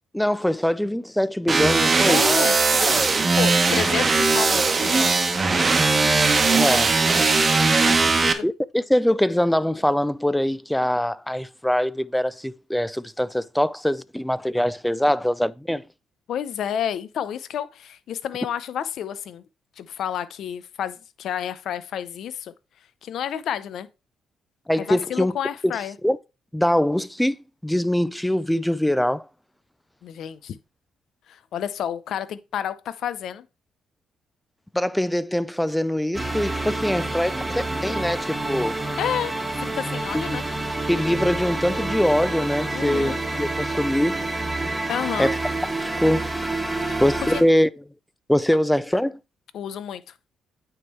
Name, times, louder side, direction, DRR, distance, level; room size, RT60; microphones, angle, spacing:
voice 1, 0.1-2.2 6.5-7.0 8.4-15.8 24.7-25.3 25.6-25.7 26.0-26.2 26.5-27.4 27.6-29.3 34.7-38.7 40.9-44.2 45.2-45.4 46.0-46.3 47.0-47.7 48.3-49.2, left 1 dB, 5° left, 0.4 m, -23 dB
sound 1, 1.5-8.3, right 4 dB, 30° right, 1.1 m, -19 dB
voice 2, 2.1-5.3 7.7-8.5 16.3-19.4 19.8-22.5 23.0-23.9 24.9-25.9 30.0-30.6 31.3-33.4 39.0-39.3 39.6-40.4 42.7-43.2 44.9-45.3 46.7-47.0 47.3-47.4 49.5-50.0, left 9 dB, 70° left, 0.7 m, -30 dB
sound 2, 36.1-47.4, right 2 dB, 10° right, 1.4 m, -28 dB
9.1 x 3.7 x 4.5 m
cardioid pair, 90°, 0 cm